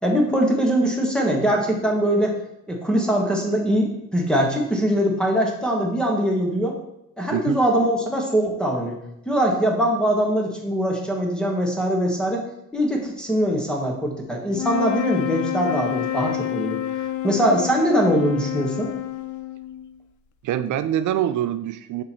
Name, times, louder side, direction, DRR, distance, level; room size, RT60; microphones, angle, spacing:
voice 1, 0.0-2.3 2.7-6.8 7.2-8.9 9.2-12.4 12.7-16.8 17.2-18.9, equal, 5° left, 0 dB, 1.5 m, -22 dB
voice 2, 7.3-7.6 20.4-22.0, right 11 dB, 75° right, 11 dB, 0.4 m, -24 dB
sound 1, 14.5-19.9, left 12 dB, 75° left, 0.5 m, -28 dB
6.2 x 4.5 x 4.4 m, 0.82 s
cardioid pair, 115°, 30 cm